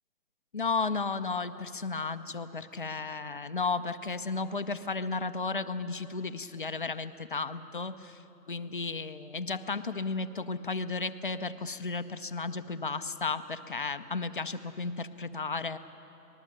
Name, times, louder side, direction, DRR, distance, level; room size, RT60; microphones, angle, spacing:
voice 1, 0.5-8.2 8.5-15.8, left 4 dB, 35° left, 10 dB, 0.5 m, -34 dB
25.5 x 19.5 x 7.4 m, 3.0 s
hypercardioid pair, 165°, 49 cm